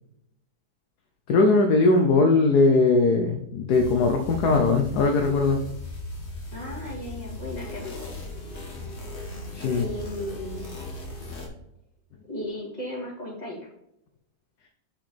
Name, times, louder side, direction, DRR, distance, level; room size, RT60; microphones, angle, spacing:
voice 1, 1.3-5.6 9.5-9.8, left 3 dB, 65° left, 4 dB, 1.2 m, -20 dB
sound 1, 3.7-11.5, left 2 dB, 35° left, 1.6 m, -37 dB
voice 2, 6.5-8.1 9.8-10.7 12.3-13.6, left 1 dB, 20° left, -4 dB, 2.7 m, -35 dB
6.1 x 5.1 x 4.3 m, 0.77 s
omnidirectional pair, 2.1 m